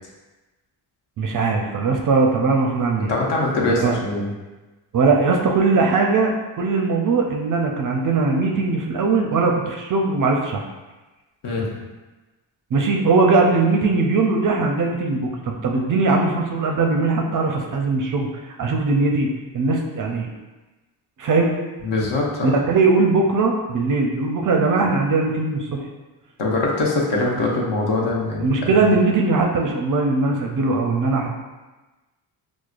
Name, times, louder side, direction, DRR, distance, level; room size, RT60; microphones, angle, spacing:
voice 1, 1.2-3.1 3.8-3.9 4.9-10.6 12.7-20.3 21.2-21.6 22.4-25.9 28.4-31.3, right 3 dB, 45° right, 1 dB, 0.4 m, -20 dB
voice 2, 3.1-4.3 11.4-11.7 21.8-22.6 26.4-28.7, left 2 dB, 60° left, -2 dB, 0.9 m, -22 dB
4.7 x 2.0 x 2.4 m, 1.2 s
cardioid pair, 95°, 47 cm